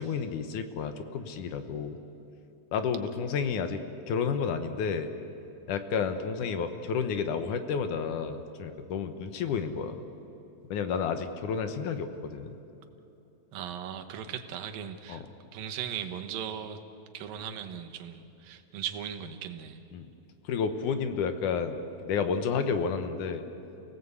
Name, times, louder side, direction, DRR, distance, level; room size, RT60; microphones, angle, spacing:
voice 1, 0.0-2.0 2.7-3.8 4.1-5.1 5.7-10.0 10.7-12.6 15.1-15.2 19.9-20.1 20.4-23.5, left 6 dB, 70° left, 9 dB, 2.4 m, -31 dB
voice 2, 13.5-15.2 15.5-16.8 17.1-19.8, right 9 dB, 85° right, 6 dB, 2.9 m, -38 dB
29.5 x 17.5 x 8.2 m, 2.9 s
omnidirectional pair, 4.0 m